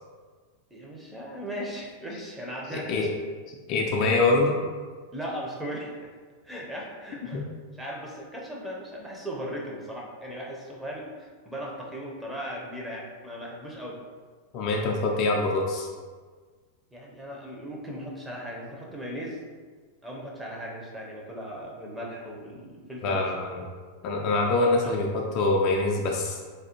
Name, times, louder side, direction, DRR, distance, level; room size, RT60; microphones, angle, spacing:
voice 1, 0.7-3.1 4.0-4.1 5.1-6.0 6.4-7.4 7.8-14.0 16.9-19.4 20.0-23.3 24.6-25.0, equal, 5° right, -3 dB, 0.6 m, -37 dB
voice 2, 3.5-4.6 7.3-7.4 14.5-15.9 23.0-23.6 24.0-26.4, left 2 dB, 40° left, -1 dB, 0.4 m, -24 dB
3.3 x 2.3 x 2.9 m, 1.5 s
figure-of-eight pair, 90°, 0 cm